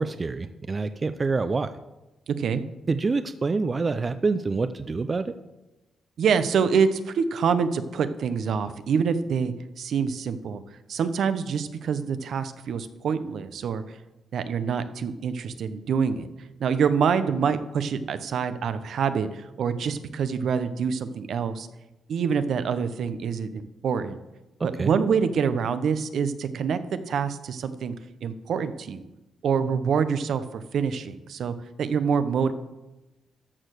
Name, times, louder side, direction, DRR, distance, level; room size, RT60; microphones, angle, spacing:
voice 1, 0.0-1.7 2.9-5.3 24.6-24.9, right 4 dB, 30° right, 11 dB, 0.4 m, -26 dB
voice 2, 6.2-10.6 10.9-13.8 14.3-16.3 16.6-21.7 22.1-24.2 24.6-26.8 27.1-27.9 28.2-29.0 29.4-32.5, right 6 dB, 65° right, 12 dB, 0.7 m, -26 dB
13.0 x 4.6 x 6.5 m, 1.0 s
cardioid pair, 120°, 0 cm